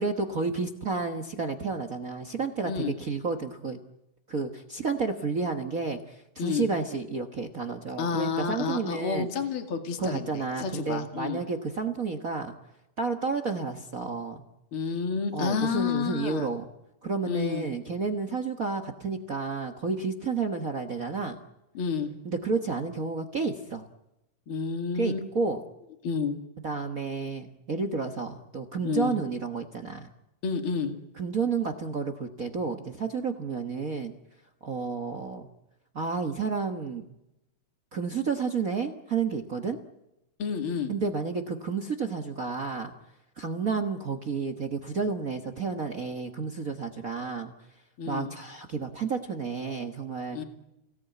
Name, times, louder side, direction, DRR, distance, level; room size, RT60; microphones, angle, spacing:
voice 1, 0.0-3.8 4.3-9.3 10.0-12.5 13.0-14.5 15.3-16.7 17.0-21.4 22.2-23.9 24.9-25.6 26.6-30.1 31.2-34.1 34.6-35.5 35.9-37.0 37.9-39.8 40.9-42.9 43.4-47.5 48.1-50.4, right 4 dB, 60° right, 8 dB, 0.9 m, -31 dB
voice 2, 8.0-11.4 14.7-16.5 17.3-17.7 21.7-22.1 24.5-25.2 26.0-26.3 28.8-29.1 30.4-30.9 40.4-40.9 48.0-48.3 50.3-50.4, left 6 dB, 45° left, 6 dB, 2.8 m, -30 dB
29.0 x 17.5 x 9.3 m, 0.93 s
omnidirectional pair, 3.7 m